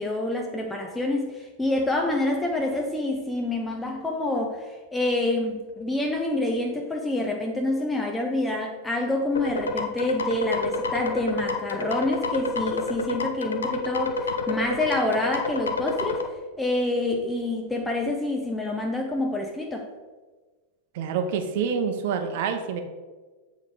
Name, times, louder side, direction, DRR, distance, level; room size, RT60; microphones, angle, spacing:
voice 1, 0.0-16.3 16.6-19.9, left 2 dB, 5° left, 1 dB, 0.7 m, -27 dB
sound 1, 9.4-16.2, left 3 dB, 70° left, 0.6 m, -28 dB
voice 2, 20.9-22.8, right 6 dB, 50° right, 6 dB, 0.8 m, -27 dB
7.5 x 3.8 x 4.9 m, 1.3 s
figure-of-eight pair, 90°, 0 cm